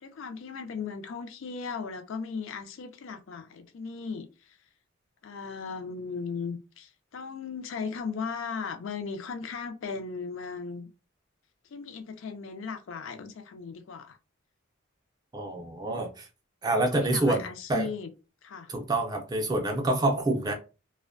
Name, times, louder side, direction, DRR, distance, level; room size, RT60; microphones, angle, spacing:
voice 1, 0.0-4.3 5.2-10.9 11.7-14.2 16.9-18.1 18.4-18.7, left 5 dB, 70° left, 0.4 m, -37 dB
voice 2, 15.3-16.3 16.6-17.4 17.7-17.9 18.7-20.5, right 2 dB, 20° right, 0.4 m, -27 dB
2.5 x 2.1 x 2.5 m
head